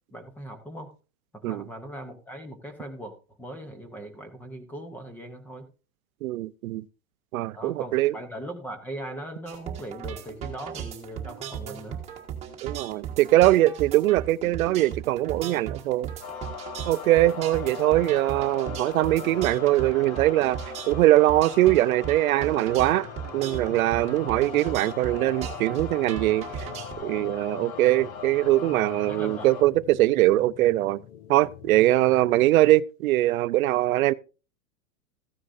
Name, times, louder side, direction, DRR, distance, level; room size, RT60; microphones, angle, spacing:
voice 1, 0.1-0.9 1.3-5.7 7.5-12.0 29.0-29.5, right 1 dB, 5° left, 0.8 m, -39 dB
voice 2, 6.2-6.8 7.3-8.1 12.6-16.1 16.8-20.6 20.9-23.1 23.3-26.5 27.0-31.0 31.3-34.1, right 16 dB, 90° right, 0.6 m, -22 dB
sound 1, 9.5-26.9, right 9 dB, 15° right, 1.5 m, -37 dB
sound 2, 16.2-29.6, left 6 dB, 80° left, 1.5 m, -39 dB
sound 3, 22.4-32.6, left 11 dB, 45° left, 0.7 m, -47 dB
14.0 x 9.6 x 2.7 m
supercardioid pair, 170°, 41 cm